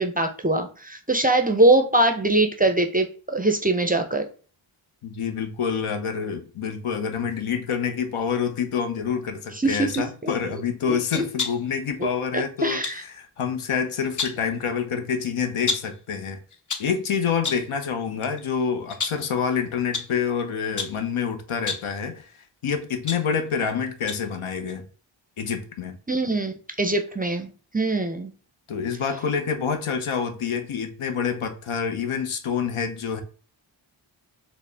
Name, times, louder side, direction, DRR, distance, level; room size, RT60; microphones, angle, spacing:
voice 1, 0.0-4.2 9.6-10.3 10.9-11.2 12.0-12.1 12.3-13.0 26.1-27.5 27.7-28.3, right 2 dB, 20° right, 0.4 m, -22 dB
voice 2, 5.0-16.4 16.8-24.9 25.4-26.0 28.7-33.2, left 6 dB, 85° left, 0.7 m, -27 dB
sound 1, 9.7-10.1 11.1-11.7 12.8-13.0 13.9-14.5 15.7-16.0 16.5-17.0 17.4-17.7 18.2-18.4 18.9-19.3 19.9-20.2 20.8-21.1 21.6-21.9 22.7-23.7 24.1-24.3 24.7-24.8, left 4 dB, 40° left, 0.6 m, -31 dB
4.1 x 2.0 x 3.2 m
wide cardioid pair, 70°, 48 cm